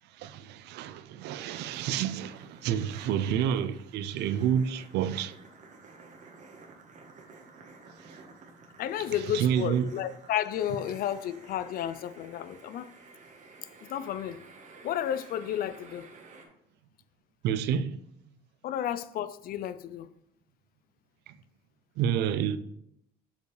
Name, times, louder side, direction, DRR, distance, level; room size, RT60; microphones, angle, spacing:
voice 1, 0.2-5.3 9.3-9.9 17.4-18.0 21.3-21.4 22.0-22.6, right 9 dB, 80° right, 0.5 m, -29 dB
sound 1, 1.5-16.5, right 4 dB, 45° right, 1.3 m, -52 dB
voice 2, 8.8-12.9 13.8-14.4 14.8-16.1 18.6-20.1, left 10 dB, 60° left, 0.4 m, -32 dB
6.8 x 5.2 x 3.2 m
cardioid pair, 110°, 17 cm